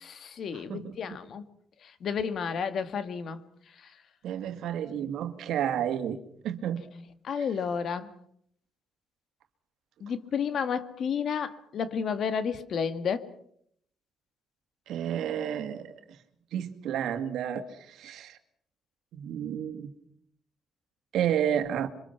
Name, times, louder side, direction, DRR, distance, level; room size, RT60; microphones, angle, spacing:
voice 1, 0.0-1.4 1.8-3.4 7.2-8.1 10.0-13.3, left 6 dB, 60° left, 11 dB, 1.8 m, -31 dB
voice 2, 4.2-6.2 6.4-6.8 7.4-7.5 14.9-16.0 16.5-18.4 19.1-19.9 21.1-21.9, right 9 dB, 80° right, 7 dB, 2.2 m, -31 dB
27.5 x 24.5 x 5.9 m, 0.67 s
cardioid pair, 90°, 0 cm